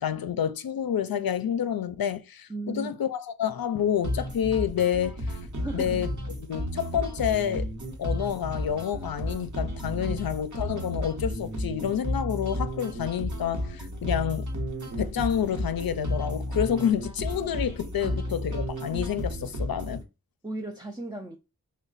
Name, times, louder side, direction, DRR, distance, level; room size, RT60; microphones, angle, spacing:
voice 1, 0.0-5.4 5.7-6.1 6.4-7.7 8.0-14.5 15.0-20.0, left 9 dB, 75° left, 0.5 m, -28 dB
voice 2, 2.5-3.0 5.6-6.0 10.1-10.2 18.0-18.2 20.4-21.4, right 2 dB, 10° right, 0.4 m, -36 dB
sound 1, 4.0-20.0, equal, 55° right, 0.9 m, -33 dB
3.1 x 2.2 x 3.8 m
wide cardioid pair, 65°, 36 cm